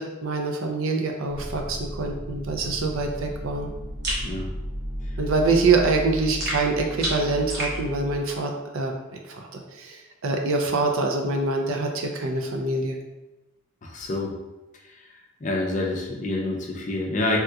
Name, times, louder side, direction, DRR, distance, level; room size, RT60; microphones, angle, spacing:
voice 1, 0.0-3.7 5.2-9.0 9.2-13.0, right 3 dB, 75° right, 2 dB, 0.5 m, -25 dB
sound 1, 1.3-8.2, equal, 20° right, 0.5 m, -35 dB
sound 2, 4.0-4.3 6.4-7.8, right 1 dB, 50° right, 1.0 m, -29 dB
voice 2, 13.8-14.3 15.4-17.4, left 2 dB, 35° left, 0 dB, 0.4 m, -27 dB
3.4 x 2.8 x 2.3 m, 1.0 s
head